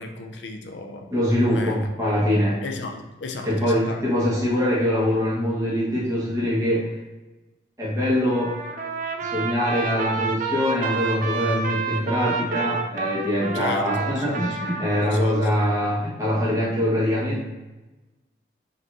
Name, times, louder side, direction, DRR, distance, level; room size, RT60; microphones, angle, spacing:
voice 1, 0.0-1.1 1.5-1.8 2.6-4.0 13.5-14.7 15.0-15.5, left 3 dB, 80° left, 4 dB, 0.5 m, -34 dB
voice 2, 1.1-2.6 3.4-6.9 7.8-8.5 9.2-17.4, equal, 15° right, -7 dB, 1.2 m, -23 dB
Trumpet, 8.3-15.1, right 4 dB, 45° right, 0.4 m, -29 dB
5.2 x 3.0 x 2.6 m, 1.1 s
head